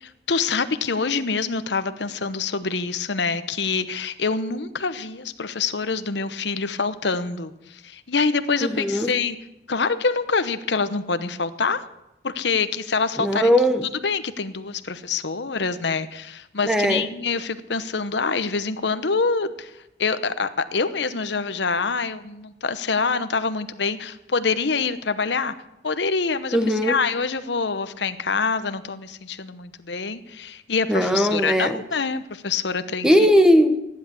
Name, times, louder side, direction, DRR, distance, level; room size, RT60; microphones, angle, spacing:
voice 1, 0.0-9.4 9.7-11.8 12.2-13.5 14.0-19.7 20.0-25.5 25.8-26.6 26.8-33.1, left 4 dB, 70° left, 11 dB, 0.9 m, -25 dB
voice 2, 8.6-9.1 13.2-13.9 16.6-17.1 26.5-27.0 30.9-31.8 33.0-33.8, equal, 5° right, 8 dB, 1.0 m, -19 dB
15.0 x 10.5 x 8.3 m, 0.90 s
head